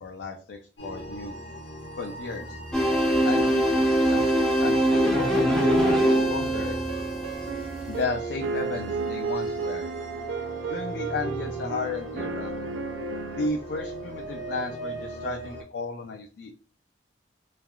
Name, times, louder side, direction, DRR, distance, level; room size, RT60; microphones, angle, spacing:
voice 1, 0.0-1.3 2.0-2.6 3.2-4.3 4.6-6.8 7.9-9.9 10.7-12.5 13.4-16.5, left 3 dB, 70° left, 4 dB, 0.4 m, -34 dB
sound 1, 0.8-15.6, right 1 dB, 85° left, 1.2 m, -38 dB
sound 2, 2.7-8.0, equal, 5° left, 0.6 m, -23 dB
sound 3, 4.9-13.5, right 5 dB, 90° right, 0.3 m, -33 dB
3.3 x 2.3 x 2.2 m, 0.40 s
head